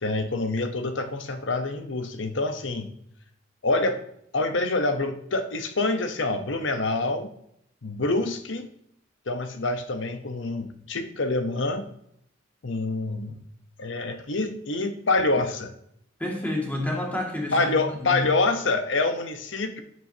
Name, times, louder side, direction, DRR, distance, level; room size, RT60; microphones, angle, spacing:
voice 1, 0.0-2.9 3.6-4.0 4.3-7.3 7.8-8.7 9.3-11.9 12.6-13.4 13.8-15.7 17.5-19.8, left 2 dB, 70° left, 8 dB, 0.9 m, -26 dB
voice 2, 16.2-18.3, left 1 dB, 10° left, -2 dB, 2.1 m, -29 dB
12.5 x 7.7 x 2.8 m, 0.73 s
head